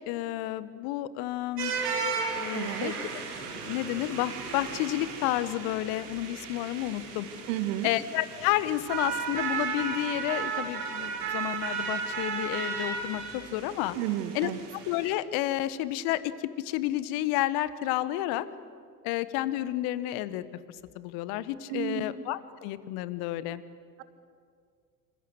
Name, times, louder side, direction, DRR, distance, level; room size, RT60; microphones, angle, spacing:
voice 1, 0.0-1.7 2.3-3.1 3.6-7.3 7.8-14.0 14.3-14.5 14.8-18.5 19.0-20.4 20.9-23.6, left 14 dB, 50° left, 15 dB, 1.5 m, -31 dB
sound 1, 1.6-15.1, right 5 dB, 75° right, 4.9 m, -35 dB
voice 2, 2.5-2.9 7.5-7.9 14.0-14.6 21.7-22.0, right 13 dB, 55° right, 12 dB, 2.0 m, -31 dB
27.5 x 26.5 x 8.1 m, 2.1 s
figure-of-eight pair, 75°, 47 cm